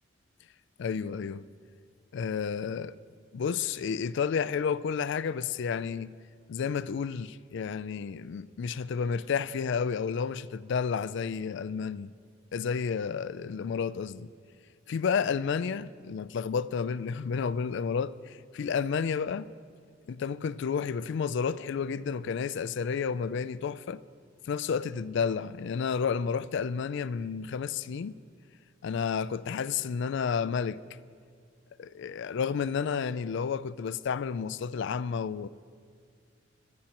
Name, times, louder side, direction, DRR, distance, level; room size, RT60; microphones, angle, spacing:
voice 1, 0.8-1.4 2.1-2.9 3.3-6.1 6.5-12.1 12.5-14.3 14.9-19.5 20.1-24.0 24.5-28.1 28.8-30.8 31.8-35.5, left 6 dB, 65° left, 0.4 m, -31 dB
23.0 x 11.5 x 3.0 m
head